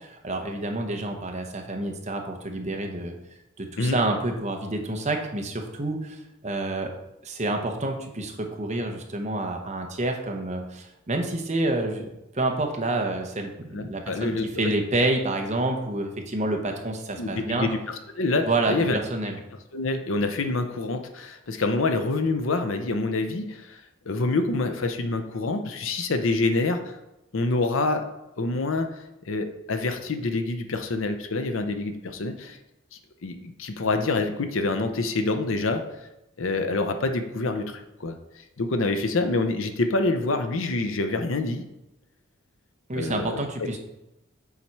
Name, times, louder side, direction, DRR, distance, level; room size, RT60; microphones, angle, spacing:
voice 1, 0.0-3.1 3.6-6.9 7.2-17.7 18.4-19.4 42.9-43.8, right 2 dB, 35° right, 3 dB, 0.8 m, -28 dB
voice 2, 13.7-14.4 17.2-19.0 19.7-23.6 24.1-26.8 27.3-28.0 28.4-28.9 29.3-32.6 33.2-35.8 36.4-37.7 38.0-38.2 38.6-41.6 42.9-43.4, left 3 dB, 65° left, 7 dB, 0.7 m, -26 dB
7.2 x 4.2 x 4.6 m, 0.90 s
head